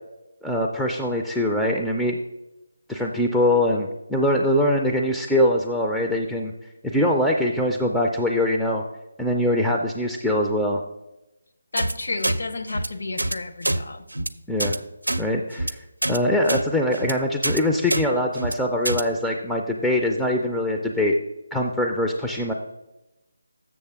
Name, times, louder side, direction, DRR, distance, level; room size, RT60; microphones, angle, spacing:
voice 1, 0.4-2.2 2.9-6.5 6.9-8.8 9.2-10.8 14.5-14.8 15.2-15.8 16.1-21.2 21.5-22.5, left 1 dB, 5° left, -1 dB, 0.4 m, -23 dB
voice 2, 11.7-14.0, left 3 dB, 60° left, 7 dB, 0.8 m, -31 dB
sound 1, 11.8-11.9 12.2-12.4 12.7-12.9 13.2-13.3 13.6-13.8 14.1-14.3 14.6-14.8 15.0-15.2 15.5-15.7 16.0-16.2 16.5-16.6 16.9-17.1 17.4-17.6 17.9-18.0 18.3-18.5 18.8-19.0, right 1 dB, 85° right, 0.5 m, -25 dB
7.2 x 6.6 x 3.4 m, 0.94 s
figure-of-eight pair, 155°, 0 cm